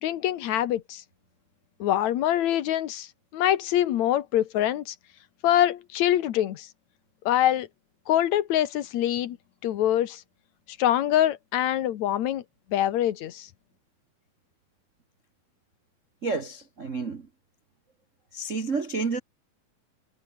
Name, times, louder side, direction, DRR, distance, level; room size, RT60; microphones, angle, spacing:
voice 1, 0.0-1.0 1.8-3.1 3.3-5.0 5.4-6.7 7.3-7.7 8.1-9.4 9.6-10.2 10.8-12.4 12.7-13.5, left 12 dB, 65° left, 2.3 m, -24 dB
voice 2, 16.2-17.3 18.3-19.2, right 4 dB, 65° right, 0.7 m, -30 dB
omnidirectional pair, 3.9 m